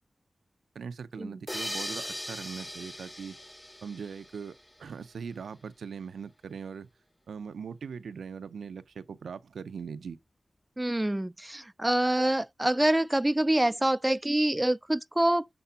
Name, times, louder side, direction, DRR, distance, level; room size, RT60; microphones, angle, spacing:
voice 1, 0.7-3.4 3.8-4.5 4.8-6.9 7.3-10.2, right 6 dB, 90° right, 0.5 m, -40 dB
sound 1, 1.5-4.8, left 1 dB, 15° left, 0.7 m, -39 dB
voice 2, 10.8-15.5, right 1 dB, 20° right, 0.3 m, -26 dB
6.9 x 3.6 x 5.5 m
cardioid pair, 40°, 0 cm